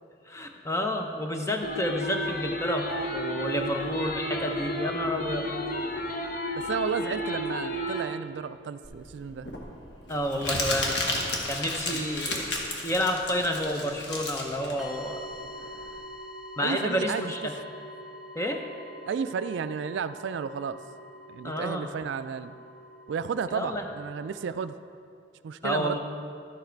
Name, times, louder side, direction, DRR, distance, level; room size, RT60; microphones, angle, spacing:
voice 1, 0.3-2.9 3.1-5.5 10.1-11.0 11.5-12.4 12.8-15.3 15.6-15.9 16.6-17.5 18.3-18.6 21.4-21.9 23.5-23.9 25.6-26.0, equal, 15° left, 3 dB, 0.6 m, -30 dB
sound 1, 1.6-8.0, equal, 50° left, 0.7 m, -32 dB
voice 2, 1.7-2.2 3.6-3.7 6.6-9.5 10.5-10.6 11.9-12.0 16.6-17.3 19.1-20.8 21.3-22.5 23.1-24.8 25.4-26.0, right 6 dB, 70° right, 12 dB, 0.3 m, -33 dB
Crumpling crinkling, 8.8-15.9, left 2 dB, 65° left, 1.4 m, -33 dB
sound 2, 14.8-24.4, equal, 5° right, 1.6 m, -45 dB
12.0 x 7.2 x 4.5 m, 2.5 s
head